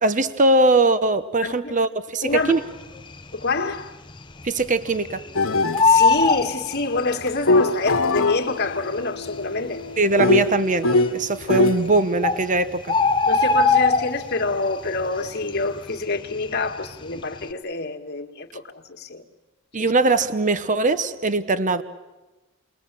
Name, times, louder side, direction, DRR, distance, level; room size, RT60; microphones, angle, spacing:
voice 1, 0.0-2.6 4.4-5.2 10.0-13.0 19.7-21.8, right 2 dB, 40° right, 1.0 m, -21 dB
voice 2, 1.4-1.7 2.2-2.6 3.3-3.9 5.8-9.8 13.3-19.2 19.8-19.9, left 3 dB, 55° left, 1.9 m, -27 dB
Bird, 2.8-3.4 3.7-3.8 4.1-5.3 5.6-7.4 8.2-8.3 9.0-9.1 9.3-9.4 10.0-10.5 11.4-11.5 11.9-12.0 12.2-14.5 14.8-15.2 15.5-16.9 17.2-17.4, left 4 dB, 25° left, 0.8 m, -20 dB
sound 1, 5.4-5.9 7.3-11.9, left 2 dB, 80° left, 1.3 m, -22 dB
30.0 x 21.5 x 7.6 m
head